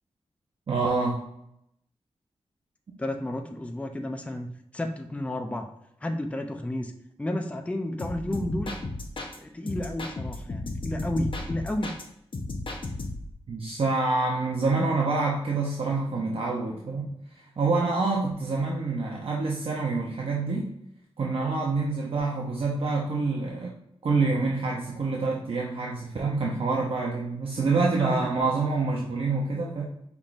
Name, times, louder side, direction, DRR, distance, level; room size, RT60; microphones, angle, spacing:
voice 1, 0.7-1.2 13.5-17.0 17.3-20.7 21.2-23.7 24.0-29.8, right 3 dB, 60° right, -2 dB, 0.7 m, -27 dB
voice 2, 3.0-5.7 6.0-6.9 7.2-8.8 9.4-12.0 28.0-28.3, left 1 dB, 10° left, 5 dB, 0.5 m, -32 dB
sound 1, 8.0-9.4 9.7-12.0 12.3-13.3, left 2 dB, 50° left, 0.8 m, -34 dB
5.7 x 3.5 x 2.5 m, 0.77 s
wide cardioid pair, 80°, 11 cm